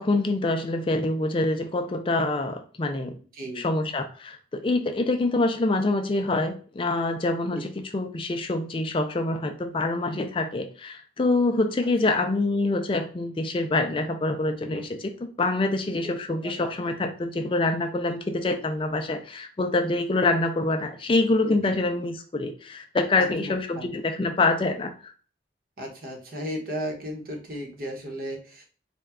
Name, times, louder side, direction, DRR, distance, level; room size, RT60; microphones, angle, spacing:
voice 1, 0.0-3.1 3.6-25.1, left 2 dB, 30° left, 5 dB, 0.4 m, -26 dB
voice 2, 3.3-3.6 7.5-7.6 16.0-16.1 16.4-16.7 21.4-21.7 23.2-23.9 25.8-28.7, equal, 50° right, 2 dB, 1.0 m, -35 dB
4.2 x 2.2 x 3.5 m, 0.40 s
head